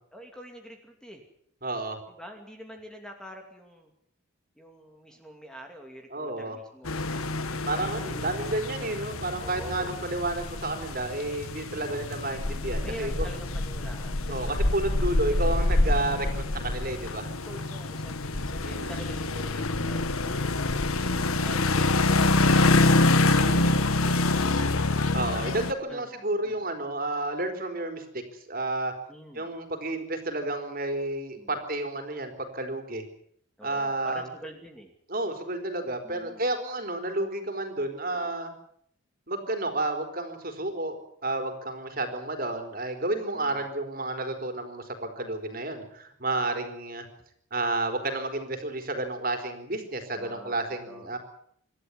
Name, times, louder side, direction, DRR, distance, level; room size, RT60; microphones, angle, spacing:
voice 1, 0.1-1.2 2.2-3.9 4.6-7.0 7.4-8.5 9.4-9.9 12.8-14.6 16.3-16.8 17.4-20.0 21.4-25.2 25.9-26.1 26.4-26.6 29.1-29.5 31.4-31.5 33.6-34.9 36.0-36.4 43.3-43.7 50.1-50.6 50.9-51.1, equal, 5° left, 3 dB, 2.6 m, -46 dB
voice 2, 1.6-2.0 6.1-6.6 7.7-13.3 14.3-17.3 18.6-19.0 23.3-23.7 25.1-28.2 28.5-28.9 29.3-33.0 33.6-34.2 35.1-38.5 39.3-47.1 47.5-51.2, right 2 dB, 40° right, 6 dB, 4.2 m, -31 dB
sound 1, 6.8-25.7, left 2 dB, 85° left, 1.6 m, -26 dB
27.0 x 13.0 x 9.7 m, 0.69 s
head